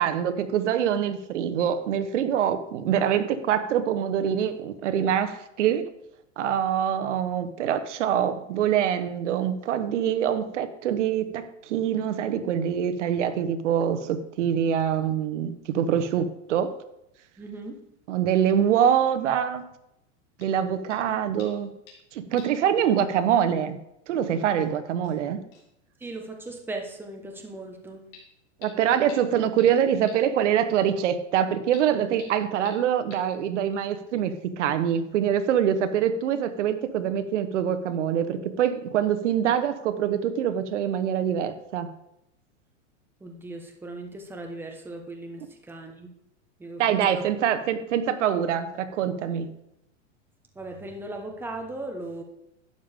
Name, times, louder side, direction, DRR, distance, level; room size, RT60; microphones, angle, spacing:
voice 1, 0.0-5.8 6.4-16.7 18.1-19.6 20.4-21.7 22.1-23.8 24.1-25.4 28.6-41.9 46.8-49.5, right 9 dB, 75° right, 11 dB, 1.2 m, -25 dB
voice 2, 17.4-17.8 26.0-28.0 43.2-46.1 46.6-46.8 47.1-47.2 50.5-52.2, right 2 dB, 5° right, 3 dB, 1.2 m, -38 dB
sound 1, 20.4-20.6 20.9-21.1 21.4-22.1 22.4-22.6 22.9-23.0 24.1-24.2 24.6-24.7 25.0-25.2 25.5-25.7 26.0-26.1 26.5-26.6 28.1-28.2 28.6-28.7 29.1-29.2 29.6-29.7 30.1-30.2 31.7-31.8 32.2-32.3 32.7-32.8 33.1-33.2, left 6 dB, 40° left, 4.1 m, -49 dB
12.0 x 9.0 x 3.6 m, 0.82 s
supercardioid pair, 150°, 36 cm